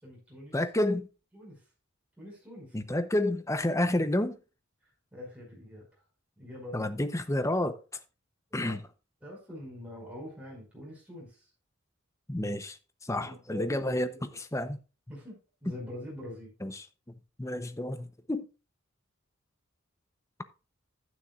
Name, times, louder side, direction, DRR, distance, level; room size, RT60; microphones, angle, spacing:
voice 1, 0.0-0.6 1.3-1.6 2.2-2.8 5.1-5.9 6.4-6.9 8.5-8.8 9.2-11.5 13.1-14.2 15.1-16.5, left 1 dB, 5° right, 5.4 m, -44 dB
voice 2, 0.5-1.0 2.7-4.4 6.7-7.8 8.5-8.8 12.3-12.8 13.0-14.1 14.4-14.8 16.6-16.8 17.4-18.4, left 1 dB, 15° left, 0.7 m, -29 dB
11.5 x 9.5 x 2.4 m
head